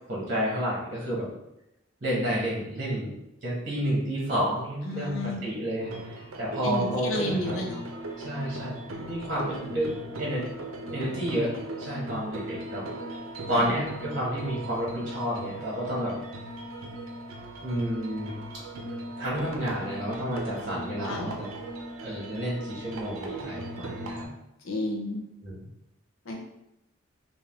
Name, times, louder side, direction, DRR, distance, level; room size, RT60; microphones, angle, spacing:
voice 1, 0.1-1.3 2.0-3.1 3.4-5.9 6.4-7.6 8.2-9.9 10.2-10.5 10.9-11.5 11.8-12.8 13.5-16.2 17.6-18.4 19.2-21.5 22.0-24.3 25.4-25.6, equal, 40° right, -5 dB, 1.1 m, -30 dB
voice 2, 4.9-5.4 6.6-7.8 13.5-13.7 21.0-21.3 24.6-25.2 26.3-26.4, left 1 dB, 80° left, 0 dB, 0.7 m, -31 dB
sound 1, 5.8-24.3, right 2 dB, 80° right, 0.5 m, -38 dB
3.5 x 2.6 x 3.4 m, 0.87 s
head